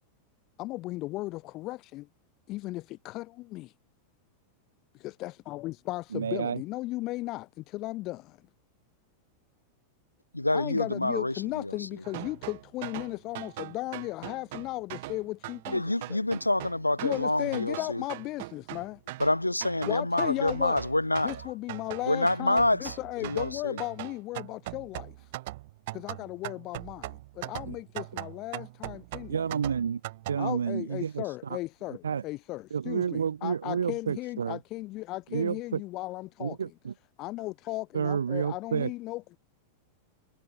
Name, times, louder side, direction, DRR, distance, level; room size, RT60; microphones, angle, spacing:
voice 1, 0.6-2.1 2.5-3.7 5.0-8.4 10.5-16.2 17.0-19.0 19.9-20.8 21.2-25.3 25.9-29.4 30.4-36.6 37.2-39.4, left 19 dB, 40° left, 2.3 m, -36 dB
voice 2, 6.1-6.6 27.6-27.8 29.3-30.0 30.3-31.6 32.0-32.2 32.7-34.6 35.3-35.8 36.4-36.9 37.9-38.9, right 7 dB, 70° right, 2.2 m, -30 dB
voice 3, 10.3-11.8 15.7-18.0 19.2-21.3 22.1-23.0 23.2-23.8, left 1 dB, 85° left, 0.8 m, -27 dB
sound 1, 12.0-30.4, right 19 dB, 50° right, 1.6 m, -41 dB
figure-of-eight pair, 90°, 0 cm